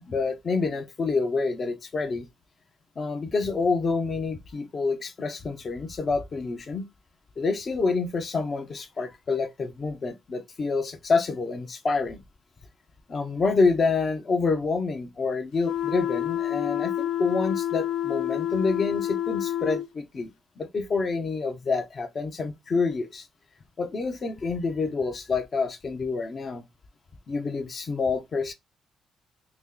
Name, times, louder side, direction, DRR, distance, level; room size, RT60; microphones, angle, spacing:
voice 1, 0.1-2.3 3.0-6.9 7.4-12.2 13.1-23.3 23.8-26.6 27.3-28.5, left 4 dB, 40° left, 0.7 m, -27 dB
sound 1, 15.6-19.9, left 11 dB, 85° left, 0.4 m, -28 dB
3.0 x 2.9 x 3.7 m
cardioid pair, 90°, 0 cm